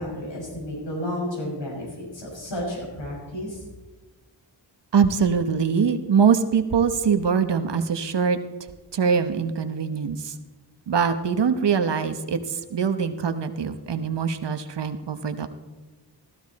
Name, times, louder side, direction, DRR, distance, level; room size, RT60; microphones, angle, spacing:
voice 1, 0.0-3.6, left 1 dB, 85° left, -3 dB, 5.8 m, -32 dB
voice 2, 4.9-8.4 8.9-10.3 10.9-15.5, right 6 dB, 75° right, 9 dB, 1.1 m, -23 dB
14.5 x 14.0 x 4.2 m, 1.2 s
cardioid pair, 55°, 43 cm